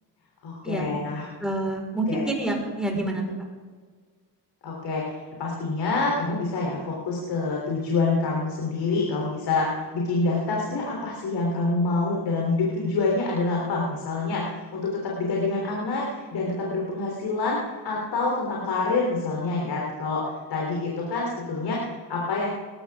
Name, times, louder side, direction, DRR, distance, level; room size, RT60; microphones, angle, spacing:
voice 1, 0.4-1.2 2.1-2.2 4.6-17.6 17.8-22.5, left 3 dB, 85° left, -2 dB, 3.5 m, -27 dB
voice 2, 1.4-3.2, right 1 dB, ahead, 0 dB, 4.8 m, -27 dB
20.0 x 12.5 x 3.6 m, 1.5 s
cardioid pair, 90°, 41 cm